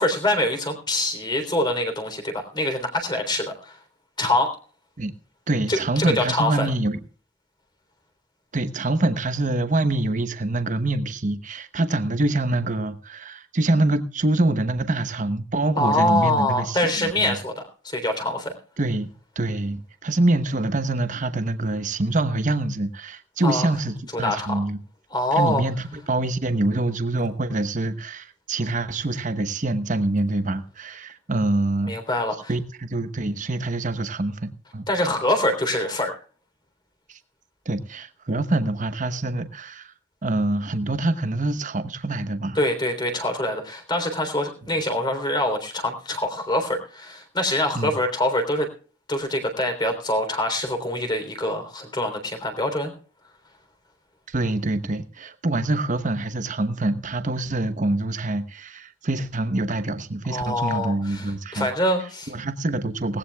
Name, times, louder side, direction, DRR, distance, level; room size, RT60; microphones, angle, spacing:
voice 1, 0.0-3.8 4.2-4.5 5.7-6.7 15.8-18.6 23.4-23.7 24.2-24.6 25.1-25.6 31.8-32.5 34.9-36.1 42.6-48.7 49.1-52.9 60.3-62.3, left 1 dB, 20° left, 3.5 m, -24 dB
voice 2, 5.5-7.0 8.5-17.4 18.8-24.8 25.4-31.9 32.5-34.9 37.1-37.2 37.7-39.9 40.2-42.6 47.7-47.9 54.3-61.7 62.3-63.2, right 2 dB, 40° right, 1.0 m, -25 dB
19.0 x 17.0 x 2.4 m
head